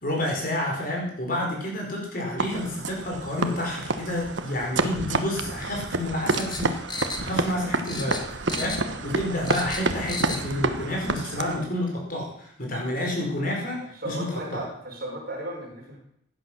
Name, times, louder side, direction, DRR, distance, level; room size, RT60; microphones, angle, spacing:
voice 1, 0.0-8.2 8.5-14.6, left 1 dB, 45° left, -1 dB, 4.7 m, -29 dB
sound 1, 2.4-11.7, right 3 dB, 65° right, 1.2 m, -29 dB
sound 2, 6.3-7.6 7.9-9.0 9.3-10.5 10.8-10.9, left 2 dB, 20° left, 1.5 m, -35 dB
voice 2, 8.5-9.0 13.9-16.0, right 1 dB, 45° right, 0 dB, 4.8 m, -36 dB
16.0 x 11.0 x 6.4 m, 0.72 s
head